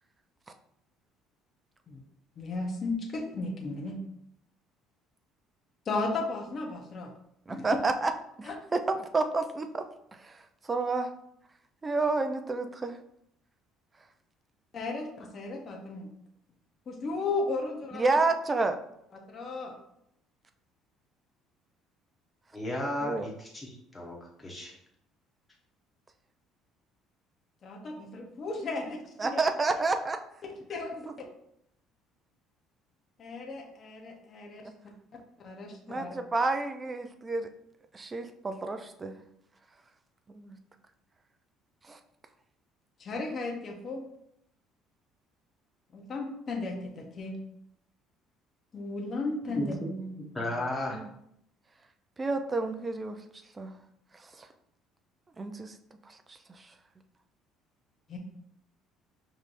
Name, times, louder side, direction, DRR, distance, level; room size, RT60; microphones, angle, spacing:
voice 1, 2.4-4.0 5.9-7.1 7.5-7.6 8.4-8.5 14.7-16.1 16.9-18.0 19.3-19.7 27.6-29.0 29.3-29.4 30.7-31.1 33.2-34.7 35.4-36.1 43.0-44.0 45.9-47.4 48.7-49.7 58.1-58.2, left 3 dB, 35° left, 1 dB, 0.8 m, -35 dB
voice 2, 7.5-8.1 8.4-9.8 10.1-10.4 10.6-11.1 11.8-13.0 18.0-18.8 23.0-23.3 29.2-30.2 31.1-31.2 34.6-34.7 35.9-37.5 37.9-39.2 40.3-40.6 41.9-42.0 49.5-50.4 50.9-51.1 52.2-53.2 53.6-53.7 54.1-54.5 55.4-55.8 56.1-56.7, right 3 dB, 20° right, 7 dB, 0.4 m, -30 dB
voice 3, 22.5-24.8 49.5-49.8 50.3-51.0, left 1 dB, 10° left, -2 dB, 1.0 m, -34 dB
5.4 x 3.1 x 2.5 m, 0.74 s
cardioid pair, 145°, 0 cm